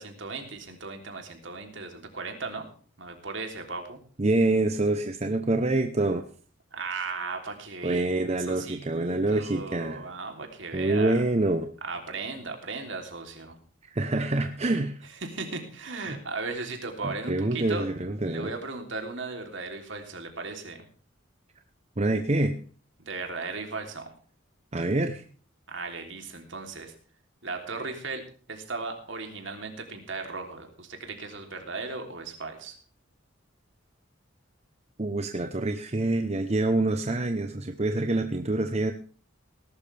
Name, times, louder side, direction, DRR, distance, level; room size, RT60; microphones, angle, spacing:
voice 1, 0.0-2.7 3.0-4.0 6.7-8.1 8.5-11.2 11.8-13.6 15.2-17.9 18.3-20.9 23.0-24.1 25.7-26.9 27.4-28.2 28.5-32.8, right 3 dB, 65° right, 4 dB, 3.3 m, -36 dB
voice 2, 4.2-6.2 7.8-10.0 10.7-11.7 13.9-15.0 16.1-16.2 17.0-18.5 22.0-22.5 24.7-25.2 35.0-38.9, right 2 dB, 35° right, 6 dB, 0.9 m, -26 dB
19.0 x 12.0 x 3.5 m, 0.43 s
head